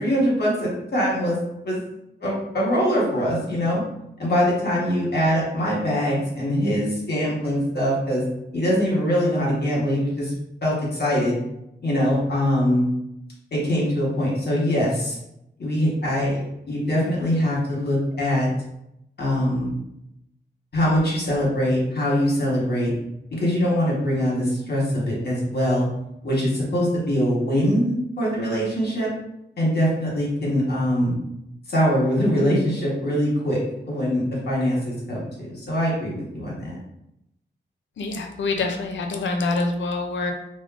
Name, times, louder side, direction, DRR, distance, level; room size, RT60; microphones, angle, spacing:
voice 1, 0.0-1.4 1.6-1.8 2.2-3.8 4.2-8.2 8.5-10.3 10.6-11.3 11.8-12.9 13.5-15.2 15.6-16.4 16.7-18.5 19.2-19.8 20.7-22.9 23.4-25.9 26.2-29.1 29.6-31.1 31.7-36.8, equal, 60° left, -5 dB, 1.1 m, -23 dB
voice 2, 38.0-40.3, left 3 dB, 90° left, 3 dB, 0.5 m, -26 dB
3.5 x 2.1 x 2.4 m, 0.83 s
wide cardioid pair, 115°, 19 cm